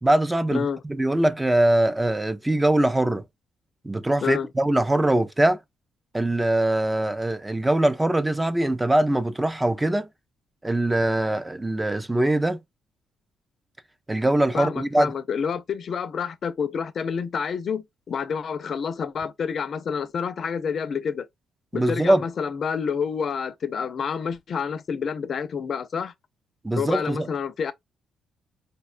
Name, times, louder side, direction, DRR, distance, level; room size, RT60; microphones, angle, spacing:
voice 1, 0.0-3.2 3.8-5.6 6.1-10.1 10.6-12.6 14.1-15.1 21.7-22.2 26.6-27.3, right 1 dB, 15° right, 0.3 m, -22 dB
voice 2, 14.5-21.3 21.7-26.1 26.8-27.7, left 6 dB, 55° left, 0.4 m, -28 dB
4.1 x 2.1 x 2.4 m
cardioid pair, 90°, 0 cm